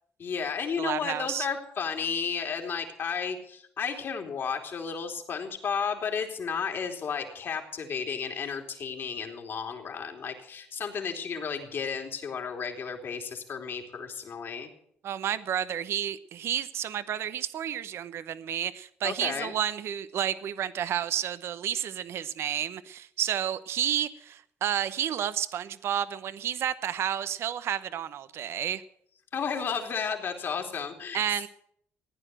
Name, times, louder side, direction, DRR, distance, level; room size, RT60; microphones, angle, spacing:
voice 1, 0.2-14.7 19.0-19.5 29.3-31.2, left 6 dB, 45° left, 3 dB, 3.1 m, -33 dB
voice 2, 0.8-1.5 15.0-28.8 31.1-31.5, right 10 dB, 60° right, 14 dB, 0.9 m, -31 dB
16.0 x 9.9 x 7.7 m, 0.68 s
cardioid pair, 95°, 5 cm